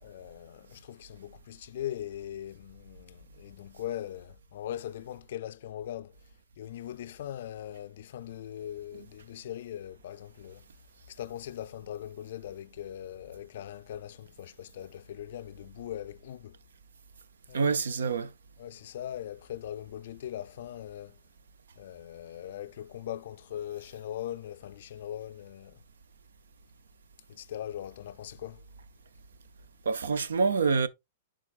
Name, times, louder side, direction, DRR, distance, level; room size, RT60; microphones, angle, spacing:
voice 1, 0.0-6.2 6.6-10.7 11.1-16.6 17.5-17.7 18.6-21.2 21.8-25.8 27.3-28.6, left 11 dB, 65° left, 0.3 m, -40 dB
voice 2, 17.5-18.3 29.9-30.9, right 5 dB, 90° right, 0.6 m, -26 dB
10.5 x 3.7 x 2.4 m
hypercardioid pair, 135°, 0 cm